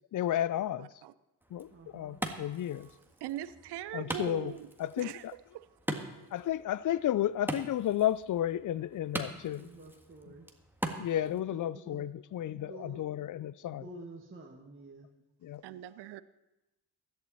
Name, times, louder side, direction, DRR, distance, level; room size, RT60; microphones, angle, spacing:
voice 1, 0.1-0.9 1.5-2.9 3.9-4.5 4.8-5.3 6.3-9.7 11.0-13.8 15.4-15.6, left 12 dB, 40° left, 20 dB, 0.5 m, -32 dB
voice 2, 0.8-1.1 3.2-4.7 5.0-5.2 15.6-16.2, right 12 dB, 55° right, 16 dB, 0.7 m, -40 dB
Wood, 1.4-11.4, right 1 dB, 5° right, 1.6 m, -42 dB
voice 3, 1.7-2.2 9.4-10.5 11.2-12.0 12.5-13.0 13.7-15.1, right 2 dB, 25° right, 1 dB, 1.7 m, -49 dB
16.0 x 11.0 x 4.2 m, 1.0 s
hypercardioid pair, 45°, 47 cm